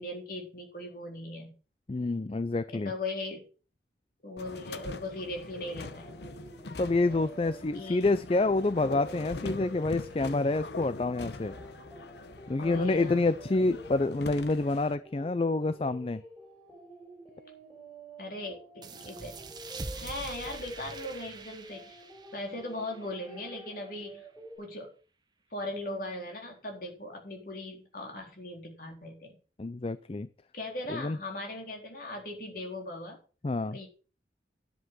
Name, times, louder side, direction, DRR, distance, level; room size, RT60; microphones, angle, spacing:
voice 1, 0.0-1.5 2.7-3.4 4.2-6.2 7.7-8.0 12.6-13.3 18.2-19.4 19.9-22.0 22.3-24.2 24.6-24.9 25.5-29.4 30.5-33.2 33.7-33.9, left 2 dB, 50° left, 1 dB, 3.9 m, -39 dB
voice 2, 1.9-2.9 6.8-11.5 12.5-16.2 29.6-30.3 30.9-31.2 33.4-33.8, left 2 dB, 30° left, 14 dB, 0.4 m, -28 dB
sound 1, 4.4-15.0, left 2 dB, 75° left, 1.0 m, -43 dB
sound 2, 5.5-24.6, right 1 dB, ahead, 4.9 m, -50 dB
sound 3, 18.8-24.0, right 3 dB, 25° right, 1.1 m, -44 dB
10.5 x 7.9 x 6.1 m, 0.37 s
head